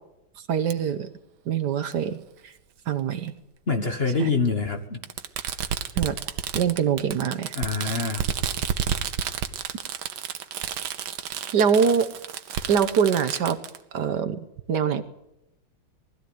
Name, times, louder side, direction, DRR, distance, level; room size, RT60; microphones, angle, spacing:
voice 1, 0.5-1.1 1.5-2.2 2.4-2.5 2.9-3.3 4.2-4.3 6.0-6.2 6.5-7.5 7.8-7.9 11.5-12.1 12.7-13.6 13.9-14.4 14.7-15.0, right 7 dB, 60° right, 11 dB, 1.4 m, -23 dB
Fireworks, 0.7-0.8 1.9-2.0 3.3-3.4 5.0-13.8, right 9 dB, 85° right, 1.8 m, -31 dB
voice 2, 3.7-5.0 7.5-8.3, left 4 dB, 35° left, 6 dB, 1.3 m, -25 dB
20.0 x 14.0 x 9.4 m, 0.89 s
omnidirectional pair, 2.2 m